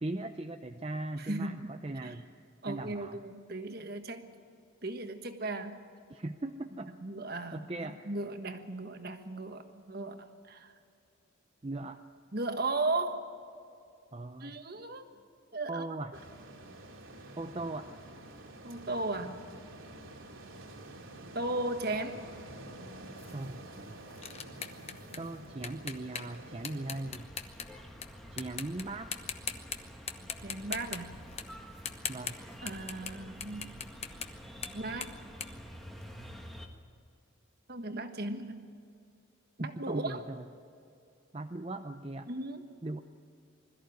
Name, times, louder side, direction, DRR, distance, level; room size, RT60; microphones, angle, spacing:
voice 1, 0.0-2.3 2.7-3.2 6.1-7.0 7.5-8.0 11.6-12.0 14.1-14.6 15.7-16.1 17.4-17.9 23.3-24.0 25.2-27.3 28.3-29.1 32.1-32.4 39.6-40.5 41.3-42.3 42.8-43.0, right 2 dB, 25° right, 6 dB, 0.6 m, -39 dB
voice 2, 1.2-1.7 2.0-2.1 2.6-4.3 4.8-5.8 7.0-10.7 12.3-13.3 14.4-15.0 15.5-15.8 18.6-19.4 21.3-22.2 30.4-31.2 32.6-33.7 34.7-35.2 37.7-38.7 39.6-40.2 42.3-42.7, right 2 dB, 50° right, 7 dB, 1.5 m, -36 dB
sound 1, 16.1-27.1, right 1 dB, 80° right, 2.5 m, -48 dB
sound 2, 23.2-28.1 28.4-28.8 29.1-29.8 30.1-33.1 33.4-36.4, left 7 dB, 30° left, 1.0 m, -41 dB
sound 3, 27.1-36.7, equal, ahead, 1.4 m, -48 dB
21.5 x 14.0 x 9.3 m, 2.5 s
head